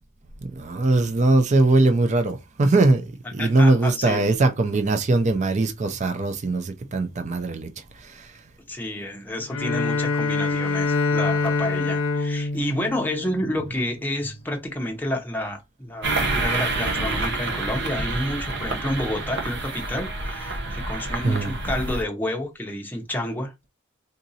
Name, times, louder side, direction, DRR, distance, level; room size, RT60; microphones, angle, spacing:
voice 1, 0.4-8.3 21.2-21.6, right 2 dB, 35° right, 0.4 m, -21 dB
voice 2, 3.4-4.2 8.7-23.5, left 1 dB, 10° left, 0.7 m, -29 dB
Bowed string instrument, 9.5-13.9, left 3 dB, 65° left, 0.6 m, -25 dB
sound 1, 16.0-22.0, right 2 dB, 55° right, 0.8 m, -28 dB
3.8 x 2.5 x 2.7 m
head